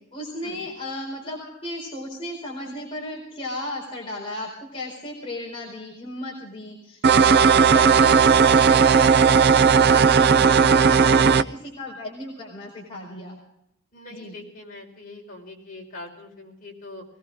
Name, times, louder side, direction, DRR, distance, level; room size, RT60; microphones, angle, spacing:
voice 1, 0.1-13.4 14.1-14.3, left 1 dB, 25° left, -3 dB, 4.4 m, -35 dB
sound 1, 7.0-11.4, right 6 dB, 50° right, 0.5 m, -16 dB
voice 2, 13.9-17.0, left 2 dB, 45° left, -1 dB, 5.4 m, -42 dB
21.0 x 18.5 x 3.7 m, 0.77 s
head